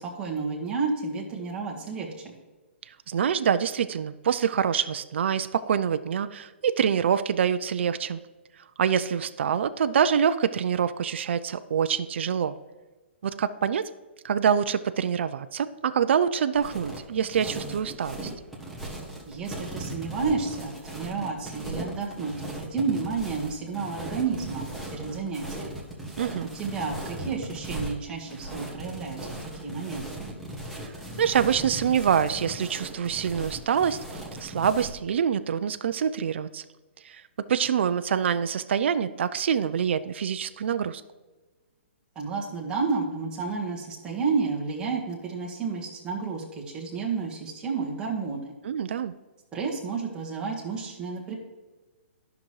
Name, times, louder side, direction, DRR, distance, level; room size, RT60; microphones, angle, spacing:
voice 1, 0.0-2.3 19.3-25.7 26.4-30.1 42.1-48.5 49.5-51.3, right 4 dB, 15° right, -2 dB, 1.6 m, -31 dB
voice 2, 2.9-8.2 8.8-12.6 13.2-13.9 14.2-18.3 26.2-26.5 30.8-30.9 31.2-36.6 37.0-37.2 37.5-41.0 48.6-49.1, right 8 dB, 65° right, 12 dB, 0.4 m, -25 dB
sound 1, 16.6-35.0, right 1 dB, ahead, 1.3 m, -38 dB
11.5 x 5.9 x 3.2 m, 1.2 s
hypercardioid pair, 150°, 7 cm